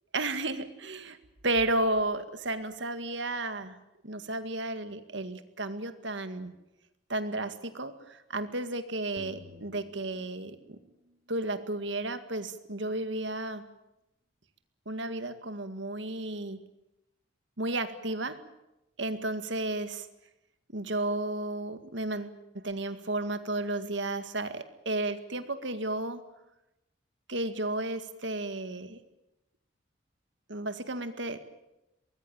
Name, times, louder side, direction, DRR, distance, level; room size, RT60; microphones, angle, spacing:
voice 1, 0.1-1.2 1.4-3.8 4.0-6.5 7.1-10.8 11.3-13.6 14.9-16.6 17.6-18.4 19.0-20.1 20.7-22.4 22.6-26.2 27.3-29.0 30.5-31.4, right 2 dB, 65° right, 10 dB, 2.1 m, -33 dB
sound 1, 9.2-11.3, equal, 45° right, 1.8 m, -52 dB
24.5 x 20.5 x 8.9 m, 0.90 s
head